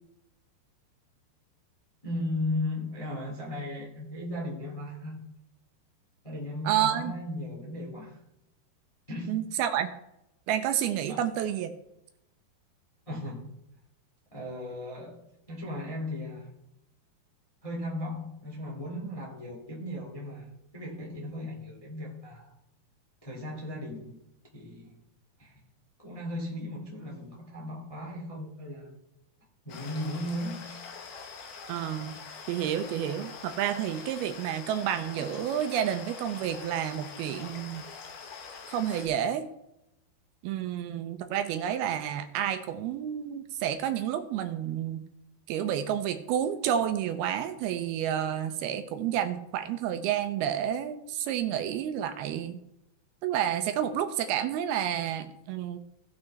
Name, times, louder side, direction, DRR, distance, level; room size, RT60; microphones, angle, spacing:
voice 1, 2.0-5.3 6.2-8.2 9.1-9.5 11.1-11.3 13.1-13.5 14.3-15.2 15.5-16.5 17.6-22.5 23.2-24.2 24.5-25.0 25.4-25.6 26.0-29.0 29.6-30.8, left 1 dB, 20° left, -3 dB, 0.9 m, -36 dB
voice 2, 6.7-7.1 9.3-9.9 10.5-11.7 31.7-32.1 32.5-37.8 38.7-39.5 40.4-45.0 45.5-52.6 53.2-55.8, right 10 dB, 80° right, 8 dB, 2.5 m, -30 dB
sound 1, 29.7-39.1, left 5 dB, 70° left, 3.1 m, -44 dB
17.5 x 6.0 x 3.2 m, 0.84 s
omnidirectional pair, 4.7 m